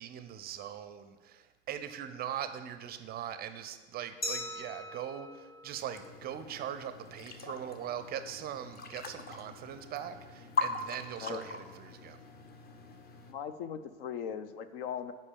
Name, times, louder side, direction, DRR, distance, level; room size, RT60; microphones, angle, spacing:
voice 1, 0.0-12.2, right 10 dB, 25° right, 11 dB, 0.5 m, -41 dB
Glass, 4.2-6.9, left 1 dB, 75° left, 1.7 m, -42 dB
sound 1, 5.9-13.3, left 4 dB, 25° left, 0.9 m, -41 dB
voice 2, 13.3-15.1, left 8 dB, 55° left, 11 dB, 0.7 m, -39 dB
8.1 x 5.5 x 7.0 m, 1.3 s
figure-of-eight pair, 75°, 35 cm